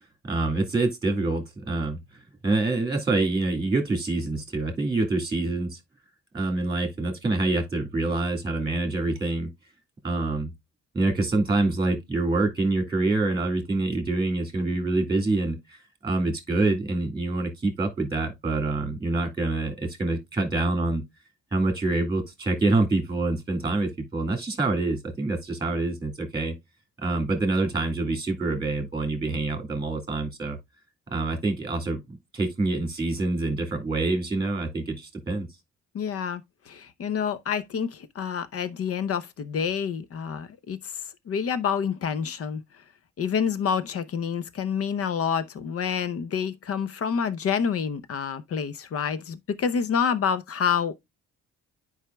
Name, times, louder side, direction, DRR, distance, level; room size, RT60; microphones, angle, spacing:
voice 1, 0.2-2.0 2.4-5.8 6.3-9.5 10.0-10.5 10.9-21.0 21.5-26.5 27.0-30.6 31.1-35.5, right 2 dB, 15° right, 2.0 m, -26 dB
voice 2, 35.9-42.6 43.2-50.9, left 7 dB, 50° left, 0.7 m, -28 dB
9.8 x 4.8 x 2.2 m
cardioid pair, 90°, 30 cm